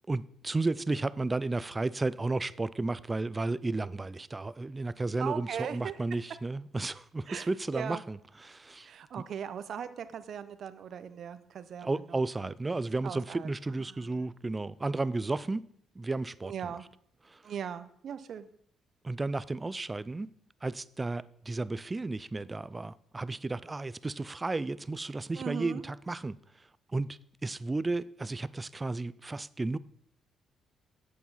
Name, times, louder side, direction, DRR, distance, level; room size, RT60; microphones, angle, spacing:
voice 1, 0.1-8.9 11.8-15.7 16.0-16.7 17.3-17.4 19.0-20.3 20.6-26.4 26.9-29.8, right 3 dB, 20° right, 0.4 m, -33 dB
voice 2, 5.2-6.0 7.3-8.0 8.8-12.5 13.0-13.5 13.8-14.3 16.4-16.9 17.4-18.5 25.4-25.8, right 8 dB, 60° right, 0.7 m, -39 dB
8.4 x 7.0 x 5.6 m
cardioid pair, 90°, 0 cm